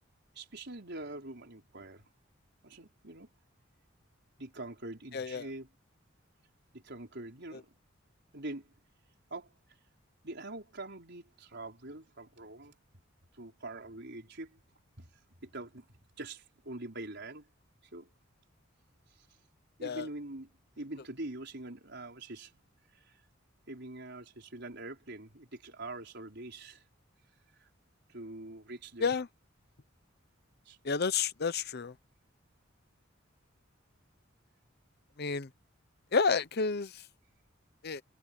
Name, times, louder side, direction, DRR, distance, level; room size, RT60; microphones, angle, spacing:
voice 1, 0.3-2.0 2.6-3.3 4.4-5.7 6.7-7.8 8.3-8.7 9.3-9.5 10.2-12.7 13.4-14.6 15.0-15.1 15.4-15.8 16.2-17.5 17.9-18.1 19.8-20.5 20.8-22.5 22.9-23.2 23.7-26.8 27.6-27.7 28.1-29.1 30.6-30.8, right 2 dB, 60° right, 5.0 m, -44 dB
voice 2, 5.1-5.4 19.8-20.0 29.0-29.3 30.8-31.9 35.2-35.5 36.1-36.9 37.8-38.0, left 5 dB, 55° left, 0.8 m, -30 dB
head